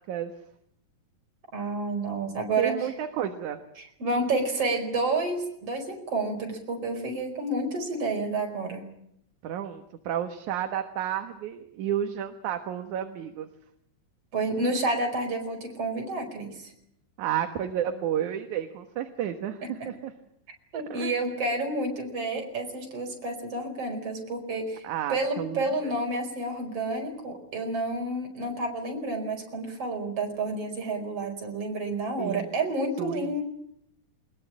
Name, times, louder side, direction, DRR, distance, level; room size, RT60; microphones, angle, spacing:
voice 1, 1.5-2.9 3.8-8.8 14.3-16.7 20.7-33.4, right 2 dB, 45° right, 3 dB, 5.8 m, -30 dB
voice 2, 2.6-3.6 9.4-13.5 17.2-20.1 20.7-21.1 24.8-25.9 32.2-32.5 33.0-33.3, right 10 dB, 65° right, 6 dB, 2.6 m, -31 dB
22.5 x 21.0 x 8.8 m, 0.73 s
omnidirectional pair, 4.0 m